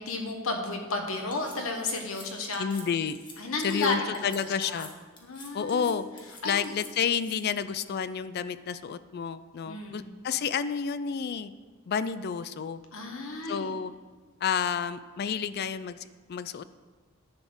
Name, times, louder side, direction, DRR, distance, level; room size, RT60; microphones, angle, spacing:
voice 1, 0.0-2.7 3.4-4.9 5.2-6.0 6.4-6.7 9.7-10.1 12.9-13.7, left 3 dB, 80° left, 3 dB, 1.3 m, -33 dB
sound 1, 1.3-1.6 2.0-2.3 2.5-2.8 3.1-3.3 3.6-3.9 4.1-4.4 4.6-4.9 5.2-5.9 6.2-7.4, left 3 dB, 25° left, 1.4 m, -47 dB
voice 2, 2.6-3.2 3.6-4.9 5.5-6.0 6.4-11.5 11.9-12.8 13.5-13.9 14.4-16.0 16.3-16.6, left 7 dB, 50° left, 14 dB, 0.3 m, -30 dB
10.5 x 4.2 x 6.9 m, 1.4 s
head